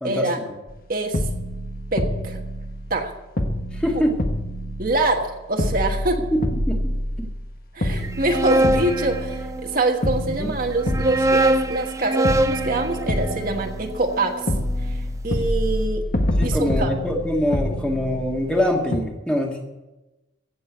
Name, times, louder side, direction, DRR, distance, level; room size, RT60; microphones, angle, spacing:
voice 1, 0.0-0.4 0.9-1.2 1.9-2.4 2.9-3.1 4.8-6.2 7.7-14.4 14.9-15.0 15.2-16.0 16.4-16.9, right 2 dB, 45° right, 3 dB, 1.4 m, -24 dB
sound 1, 0.7-0.8 1.1-3.1 3.4-5.3 5.6-7.4 7.8-9.7 10.0-11.9 12.2-14.2 14.5-18.6 18.9-19.0, left 1 dB, 50° left, 1.3 m, -27 dB
voice 2, 3.7-4.2 6.3-7.3 10.3-10.5 16.4-19.6, left 1 dB, 5° left, 0 dB, 1.8 m, -24 dB
sound 2, 8.0-9.9 10.7-14.9, right 1 dB, 15° right, 0.6 m, -24 dB
16.0 x 6.9 x 8.0 m, 1.0 s
head